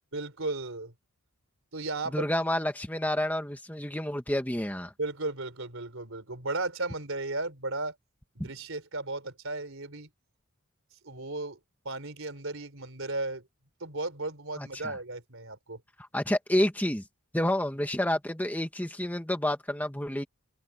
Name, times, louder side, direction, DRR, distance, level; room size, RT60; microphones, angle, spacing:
voice 1, 0.1-0.9 1.7-2.3 5.0-8.0 8.4-10.1 11.0-11.6 11.8-13.4 13.8-15.8, right 2 dB, 60° right, 3.9 m, -35 dB
voice 2, 2.1-4.9 8.4-8.5 14.6-14.9 16.0-17.0 17.3-20.2, left 1 dB, 5° left, 1.3 m, -29 dB
open air
head